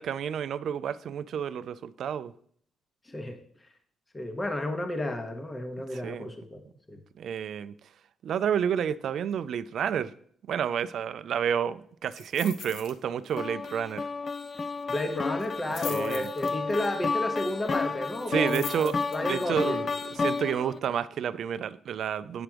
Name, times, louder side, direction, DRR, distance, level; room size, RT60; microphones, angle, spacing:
voice 1, 0.0-2.3 5.9-6.3 7.2-7.7 8.2-10.1 10.5-14.0 15.9-16.3 18.3-19.0 19.2-22.4, right 8 dB, 65° right, 15 dB, 0.4 m, -30 dB
voice 2, 3.1-3.4 4.1-6.6 6.9-7.0 14.9-19.8, left 1 dB, 20° left, 5 dB, 1.0 m, -32 dB
sound 1, 12.1-13.0 13.2-13.5 13.8-13.9 15.4-16.9 18.1-19.4 20.0-20.1, left 7 dB, 70° left, 0.7 m, -42 dB
sound 2, 13.4-20.8, left 4 dB, 35° left, 0.4 m, -31 dB
8.8 x 3.4 x 6.0 m, 0.62 s
cardioid pair, 90°, 0 cm